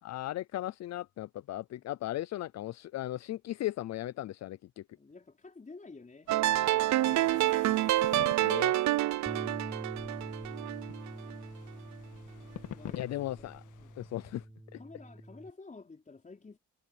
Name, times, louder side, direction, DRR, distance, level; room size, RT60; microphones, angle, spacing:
voice 1, 0.0-4.8 8.4-8.8 13.0-13.6 14.0-14.4 14.7-14.8, left 14 dB, 60° left, 0.6 m, -37 dB
voice 2, 5.0-8.6 10.4-11.0 12.7-13.5 13.8-14.0 14.7-16.6, left 3 dB, 25° left, 4.7 m, -52 dB
sound 1, 6.3-14.5, left 12 dB, 80° left, 1.7 m, -49 dB
sound 2, 6.3-11.4, right 15 dB, 65° right, 0.5 m, -28 dB
Bass guitar, 9.3-15.5, right 1 dB, 5° right, 0.8 m, -45 dB
cardioid pair, 90°, 30 cm